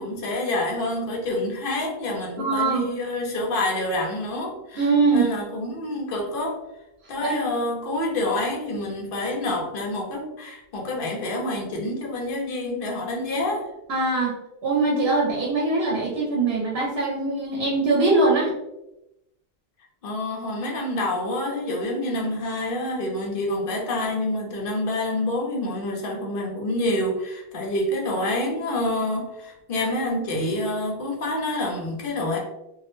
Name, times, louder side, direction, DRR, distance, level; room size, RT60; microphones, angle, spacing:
voice 1, 0.0-6.6 7.1-13.7 20.0-32.4, left 1 dB, 65° left, 0 dB, 0.8 m, -27 dB
voice 2, 2.4-2.9 4.8-5.3 7.2-7.4 13.9-14.3 14.6-18.5, right 3 dB, 80° right, -2 dB, 0.8 m, -22 dB
2.2 x 2.1 x 3.0 m, 0.91 s
omnidirectional pair, 1.0 m